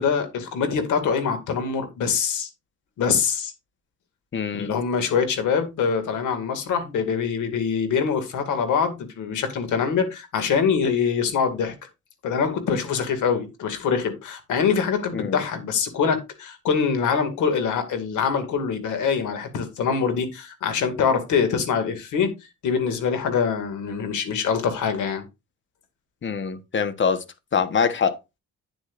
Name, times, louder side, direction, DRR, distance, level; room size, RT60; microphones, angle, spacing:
voice 1, 0.0-2.5 3.0-3.5 4.5-11.7 12.2-25.2, left 6 dB, 80° left, 2.2 m, -24 dB
voice 2, 4.3-4.7 15.1-15.4 26.2-27.2 27.5-28.2, left 6 dB, 40° left, 1.1 m, -24 dB
9.3 x 8.5 x 2.5 m
cardioid pair, 90°, 30 cm